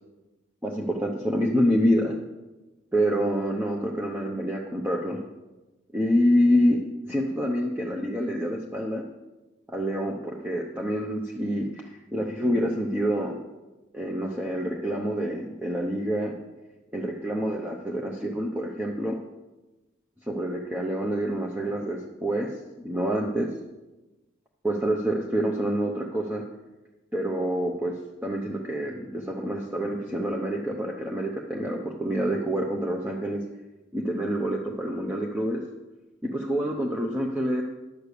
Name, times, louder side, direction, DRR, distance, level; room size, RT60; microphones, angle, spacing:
voice 1, 0.6-2.2 2.9-5.2 5.9-9.0 9.7-13.4 13.9-16.4 16.9-19.2 20.3-22.5 22.8-23.5 24.6-26.4 27.1-27.9 28.2-33.4 33.9-35.6 36.2-37.6, equal, 10° right, 0 dB, 0.7 m, -27 dB
11.0 x 6.7 x 6.7 m, 1.1 s
head